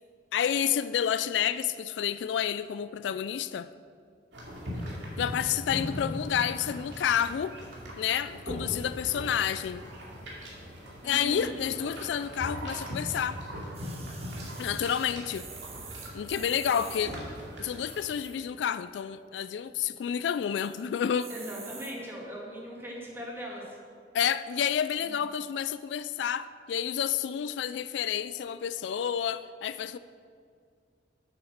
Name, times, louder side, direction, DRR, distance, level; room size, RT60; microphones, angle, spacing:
voice 1, 0.3-3.7 5.1-7.6 8.0-9.9 11.0-13.4 14.6-15.5 16.1-17.2 17.6-21.3 24.1-30.0, left 9 dB, 75° left, 14 dB, 0.3 m, -29 dB
sound 1, 4.3-18.1, equal, 85° right, 2.5 m, -40 dB
voice 2, 11.0-11.5 21.3-23.8 25.1-25.2, equal, 15° right, -3 dB, 2.2 m, -39 dB
sound 2, 13.7-17.0 17.8-18.5 19.0-19.1 19.2-19.3 19.7-20.1 20.6-20.8 21.2-21.9 22.6-22.7, right 6 dB, 35° right, 1.2 m, -47 dB
8.1 x 7.1 x 6.5 m, 2.2 s
head